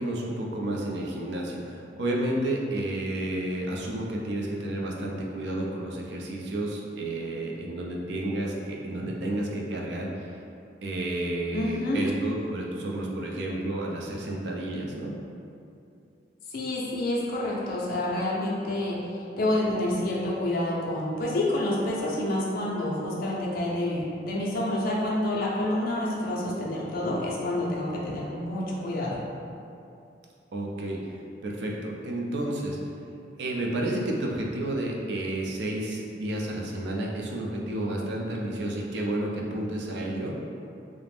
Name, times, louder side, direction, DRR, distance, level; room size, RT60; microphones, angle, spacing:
voice 1, 0.0-10.3 10.8-15.1 30.5-31.1 31.4-32.8 33.4-40.4, right 1 dB, 65° right, -1 dB, 0.4 m, -31 dB
voice 2, 11.5-12.0 16.5-29.2, left 1 dB, 55° left, -4 dB, 0.4 m, -28 dB
2.4 x 2.0 x 3.3 m, 2.6 s
head